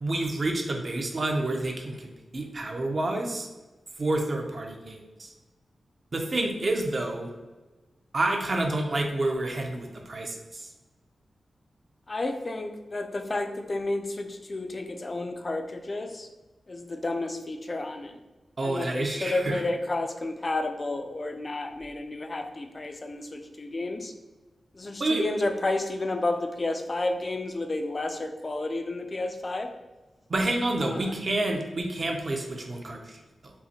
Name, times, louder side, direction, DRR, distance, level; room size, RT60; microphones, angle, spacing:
voice 1, 0.0-3.5 4.0-5.3 6.1-7.3 8.1-10.7 18.6-19.6 25.0-25.2 30.3-33.5, right 2 dB, 45° right, 2 dB, 0.6 m, -29 dB
voice 2, 12.1-16.3 16.7-18.1 18.6-24.1 24.7-29.7 30.8-31.2, left 2 dB, 35° left, 6 dB, 0.4 m, -31 dB
5.4 x 2.1 x 2.8 m, 1.2 s
wide cardioid pair, 115°, 0 cm